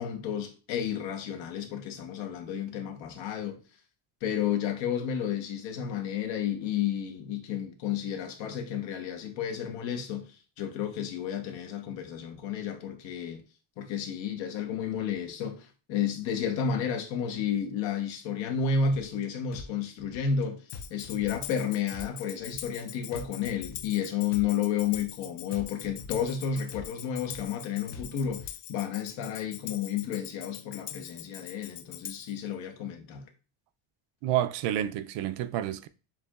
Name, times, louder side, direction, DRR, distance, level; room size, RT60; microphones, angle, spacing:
voice 1, 0.0-3.6 4.2-13.4 13.8-20.6 20.9-33.3, left 7 dB, 65° left, 1.1 m, -31 dB
sound 1, 18.9-19.2 19.5-20.4 20.7-21.6 21.9-22.8 23.1-24.0 24.3-25.2 25.5-26.4 26.7-27.6 27.9-28.5, left 4 dB, 40° left, 0.4 m, -45 dB
Tambourine, 20.7-32.4, left 12 dB, 90° left, 0.7 m, -43 dB
voice 2, 34.2-35.9, right 12 dB, 60° right, 0.5 m, -29 dB
6.9 x 2.9 x 2.3 m
cardioid pair, 160°, 49 cm